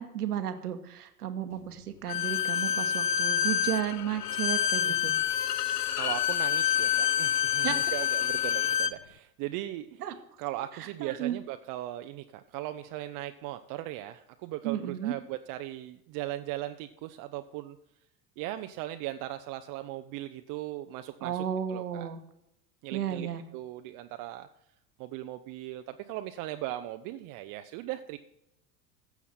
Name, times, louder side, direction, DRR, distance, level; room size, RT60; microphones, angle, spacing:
voice 1, 0.0-5.1 7.6-7.8 10.0-10.1 10.8-11.3 14.6-15.1 21.2-22.2 22.9-23.4, right 10 dB, 75° right, 9 dB, 1.3 m, -33 dB
Bowed string instrument, 2.1-9.0, left 9 dB, 85° left, 0.7 m, -27 dB
voice 2, 5.9-10.0 10.4-17.8 18.4-22.1 22.8-24.5 25.0-28.2, right 14 dB, 45° right, 8 dB, 0.7 m, -38 dB
15.0 x 7.1 x 4.2 m, 0.86 s
figure-of-eight pair, 80°, 46 cm